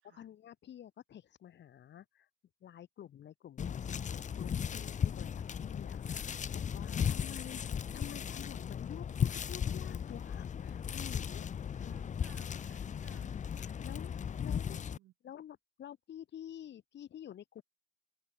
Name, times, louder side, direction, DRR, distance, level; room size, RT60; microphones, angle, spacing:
voice 1, 0.1-2.3 2.6-7.6 7.9-11.5 11.8-12.1 13.6-14.1 14.4-14.8 15.2-17.6, left 10 dB, 65° left, 1.5 m, -50 dB
sound 1, 3.6-15.0, left 8 dB, 40° left, 0.6 m, -36 dB
voice 2, 11.7-13.4 14.3-15.1, right 15 dB, 90° right, 3.8 m, -63 dB
cardioid pair, 90°, 20 cm